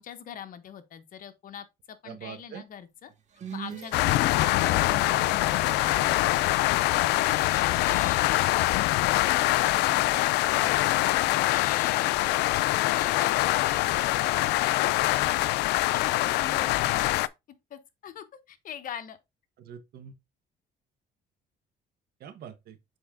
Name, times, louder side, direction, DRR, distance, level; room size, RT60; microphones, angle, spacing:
voice 1, 0.0-3.1 3.5-4.5 4.9-6.5 7.0-8.8 9.1-12.2 12.8-15.1 15.9-17.2 17.7-19.2, left 9 dB, 55° left, 1.1 m, -42 dB
voice 2, 2.0-2.6 7.8-8.0 10.4-10.7 19.6-20.2 22.2-22.8, right 8 dB, 65° right, 1.2 m, -43 dB
sound 1, 3.1-7.4, right 6 dB, 45° right, 1.8 m, -43 dB
sound 2, 3.9-17.3, left 17 dB, 85° left, 0.4 m, -24 dB
7.0 x 4.4 x 3.7 m
cardioid pair, 110°, 17 cm